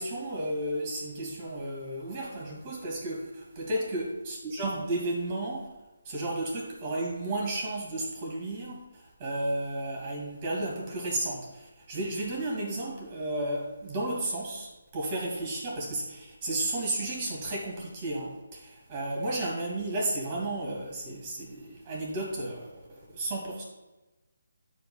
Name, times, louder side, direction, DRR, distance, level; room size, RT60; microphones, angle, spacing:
voice 1, 0.0-5.7 6.0-23.6, right 1 dB, 30° right, -2 dB, 2.3 m, -33 dB
11.5 x 5.3 x 2.3 m, 1.1 s
figure-of-eight pair, 145°, 0 cm